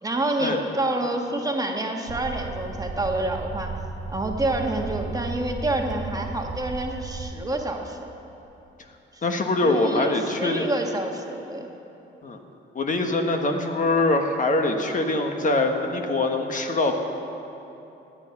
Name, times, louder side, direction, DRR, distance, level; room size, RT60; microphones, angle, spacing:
voice 1, 0.0-3.7 4.1-8.1 9.1-9.2 9.6-11.7, right 2 dB, 20° right, 2 dB, 1.4 m, -28 dB
sound 1, 2.1-7.3, right 4 dB, 50° right, 0.8 m, -34 dB
voice 2, 9.2-10.7 12.2-12.4 12.7-17.0, left 2 dB, 40° left, 4 dB, 1.3 m, -23 dB
17.0 x 9.8 x 5.9 m, 2.9 s
cardioid pair, 90°, 20 cm